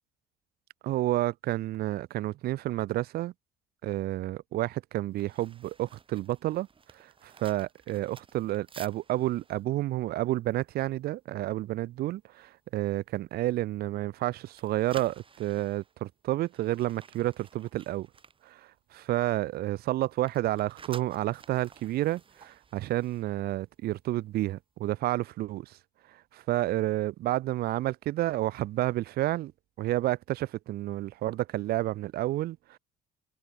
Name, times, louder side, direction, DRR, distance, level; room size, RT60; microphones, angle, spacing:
voice 1, 0.8-3.3 3.8-6.7 6.9-18.1 18.4-25.8 26.1-29.5 29.8-32.8, right 15 dB, 65° right, 0.6 m, -30 dB
sound 1, 5.1-11.2 11.5-11.8 12.2-12.5 13.0-14.2 14.5-19.2 19.5-24.0 24.3-24.5, right 5 dB, 30° right, 5.2 m, -53 dB
cardioid pair, 110°, 17 cm